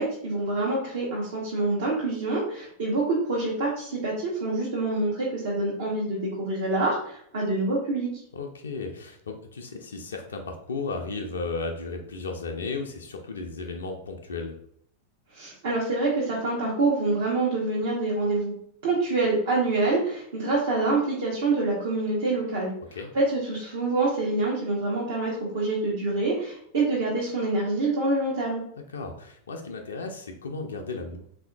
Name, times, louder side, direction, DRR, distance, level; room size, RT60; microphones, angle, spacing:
voice 1, 0.0-8.1 15.3-18.5 18.8-22.7 23.1-28.6, right 2 dB, 60° right, -5 dB, 0.8 m, -26 dB
voice 2, 8.3-14.5 22.9-23.1 28.9-31.2, left 3 dB, 70° left, 3 dB, 0.4 m, -34 dB
3.5 x 2.6 x 2.2 m, 0.67 s
figure-of-eight pair, 90°, 0 cm